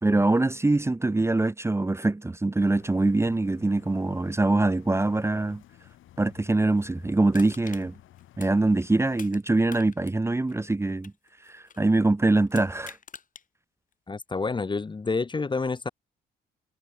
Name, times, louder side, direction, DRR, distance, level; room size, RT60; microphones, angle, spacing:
voice 1, 0.0-5.6 6.2-7.9 8.4-11.1 11.4-13.0, right 2 dB, 15° right, 0.9 m, -24 dB
sound 1, 2.5-9.3, left 13 dB, 80° left, 6.8 m, -54 dB
Crushing, 7.3-9.4 9.7-11.9 12.5-13.5 13.9-14.0, left 6 dB, 40° left, 2.5 m, -47 dB
voice 2, 14.1-15.9, left 4 dB, 25° left, 1.0 m, -28 dB
cardioid pair, 90°, 20 cm